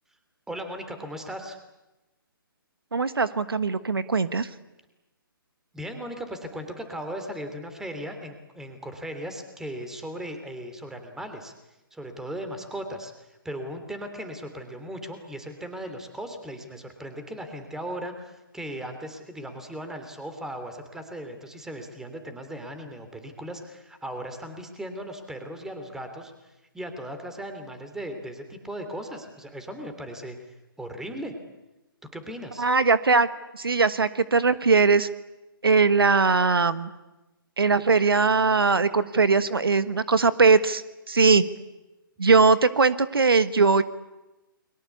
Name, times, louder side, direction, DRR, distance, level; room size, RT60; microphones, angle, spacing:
voice 1, 0.5-1.6 5.7-11.5 11.9-30.4 30.8-31.3 32.0-32.7, equal, 5° right, 7 dB, 3.1 m, -37 dB
voice 2, 2.9-4.5 32.6-33.3 33.5-35.1 35.6-36.9 37.6-40.8 41.1-41.4 42.2-43.8, right 4 dB, 85° right, 13 dB, 1.4 m, -20 dB
29.5 x 22.5 x 8.4 m, 1.0 s
hypercardioid pair, 140°, 12 cm